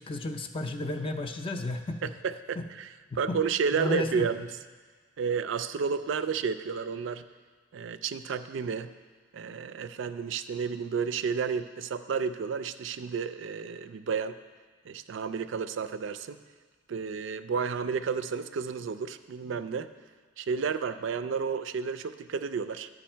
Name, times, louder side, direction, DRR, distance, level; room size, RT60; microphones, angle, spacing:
voice 1, 0.0-2.0 2.6-2.7 3.3-3.4 3.7-4.3, left 2 dB, 25° left, 6 dB, 0.4 m, -32 dB
voice 2, 2.0-2.9 3.2-4.5 5.2-7.2 7.7-8.9 9.3-14.4 14.9-16.4 16.9-19.9 20.4-22.9, right 6 dB, 65° right, 12 dB, 0.4 m, -31 dB
11.5 x 4.9 x 4.4 m, 1.5 s
head